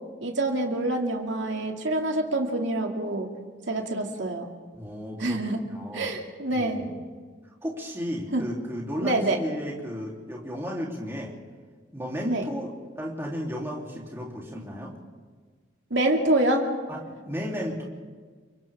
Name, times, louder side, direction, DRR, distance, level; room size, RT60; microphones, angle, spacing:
voice 1, 0.2-3.3 3.7-4.5 5.2-5.6 5.9-6.8 8.3-8.5 9.0-9.4 12.2-12.4 15.9-16.7, right 1 dB, 70° right, 2 dB, 2.5 m, -26 dB
voice 2, 4.7-5.4 5.7-6.1 6.5-6.9 7.6-11.3 11.9-12.7 13.0-14.9 16.9-17.0 17.2-17.8, equal, 15° right, -3 dB, 3.4 m, -34 dB
29.0 x 24.5 x 3.7 m, 1.5 s
head